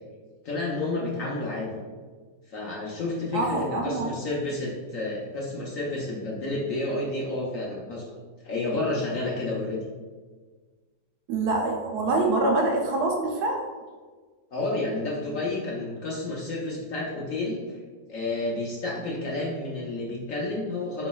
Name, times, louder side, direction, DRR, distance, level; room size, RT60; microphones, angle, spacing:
voice 1, 0.4-1.7 2.5-8.1 8.4-9.8 14.5-17.8 18.1-21.1, left 2 dB, 60° left, -4 dB, 0.9 m, -30 dB
voice 2, 3.3-4.1 11.3-13.6, right 2 dB, 70° right, 0 dB, 1.0 m, -25 dB
4.4 x 4.0 x 2.3 m, 1.4 s
omnidirectional pair, 1.9 m